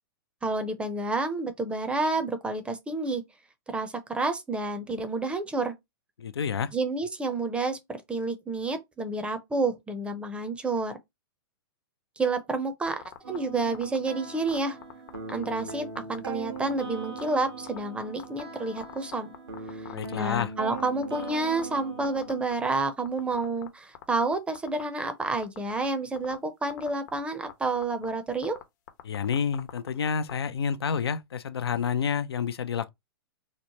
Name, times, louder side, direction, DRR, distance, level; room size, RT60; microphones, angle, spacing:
voice 1, 0.4-3.2 3.7-5.7 6.7-7.8 8.1-11.0 12.2-14.8 15.3-19.3 19.7-28.6, right 3 dB, 10° right, 0.5 m, -29 dB
voice 2, 6.2-6.7 19.9-20.5 29.0-32.9, left 7 dB, 85° left, 0.4 m, -29 dB
sound 1, 12.9-13.4 13.7-14.0 14.5-15.7 16.0-16.2 16.6-16.8 17.2-17.3 17.7-18.4 18.8-21.8 22.0-22.8 23.1-23.7 24.0-24.8 25.3-25.9 26.2-26.4 26.7-27.2 27.5-27.6 27.8-28.1 28.4-30.3, left 12 dB, 55° left, 0.7 m, -41 dB
sound 2, 13.2-22.4, right 4 dB, 85° right, 1.0 m, -40 dB
2.9 x 2.1 x 2.8 m
hypercardioid pair, 120°, 13 cm